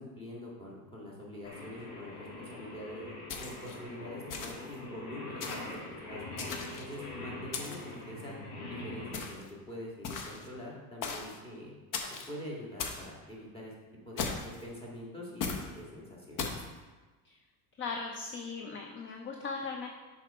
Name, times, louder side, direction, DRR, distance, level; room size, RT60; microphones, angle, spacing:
voice 1, 0.0-3.1 3.4-6.2 6.8-8.3 8.7-11.7 12.3-13.7 14.1-14.3 14.6-16.4, left 1 dB, 15° left, -4 dB, 1.8 m, -44 dB
Singing, 1.4-9.2, left 2 dB, 75° left, 2.1 m, -43 dB
sound 1, 3.3-3.8 4.3-4.7 5.4-5.8 6.4-6.9 7.5-7.9 9.1-9.5 10.0-10.5 11.0-11.4 11.9-12.3 12.8-13.1 14.2-14.6 15.4-15.7 16.4-16.7, left 5 dB, 50° left, 0.9 m, -37 dB
voice 2, 17.8-19.9, left 4 dB, 30° left, 3 dB, 0.5 m, -38 dB
6.5 x 4.2 x 5.3 m, 1.2 s
cardioid pair, 140°, 41 cm